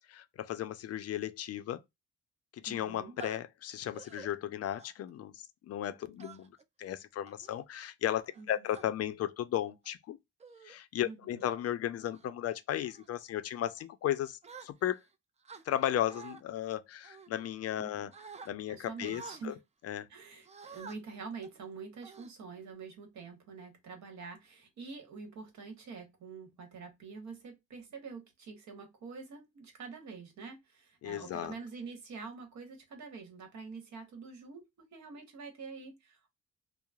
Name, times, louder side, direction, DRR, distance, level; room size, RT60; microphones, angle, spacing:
voice 1, 0.1-1.8 2.5-6.5 6.8-10.2 10.6-15.0 15.7-18.1 18.5-19.5 19.8-20.1 31.0-31.5, left 11 dB, 55° left, 0.4 m, -35 dB
voice 2, 2.7-3.2 8.4-8.5 11.0-11.4 17.8-18.1 18.7-19.6 20.1-34.6 34.9-36.3, right 4 dB, 65° right, 1.1 m, -46 dB
sound 1, 3.2-3.4 3.9-4.3 4.8-5.1 6.2-6.6 7.3-7.6 8.3-8.9 9.7-9.9 10.4-10.8 11.2-11.5 12.0-12.3 12.8-13.1 14.4-15.1 15.4-16.4 17.0-17.8 18.1-18.5 19.0-19.4 20.4-21.0 21.4-21.6 22.0-22.7, right 5 dB, 25° right, 0.3 m, -50 dB
2.9 x 2.0 x 2.3 m
cardioid pair, 90°, 30 cm